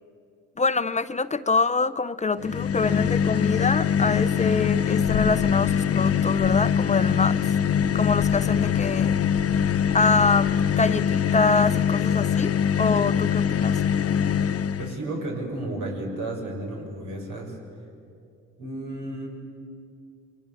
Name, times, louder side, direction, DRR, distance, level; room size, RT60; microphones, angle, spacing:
voice 1, 0.6-7.4 7.9-9.1 9.9-12.5 12.8-13.8, left 4 dB, 25° left, 13 dB, 0.6 m, -25 dB
sound 1, 2.4-15.0, left 8 dB, 50° left, 0.9 m, -23 dB
sound 2, 5.0-11.5, left 8 dB, 80° left, 1.2 m, -38 dB
voice 2, 14.8-17.6 18.6-19.3, right 1 dB, 80° right, 0 dB, 7.1 m, -32 dB
29.0 x 23.5 x 7.4 m, 2.5 s
cardioid pair, 90°, 30 cm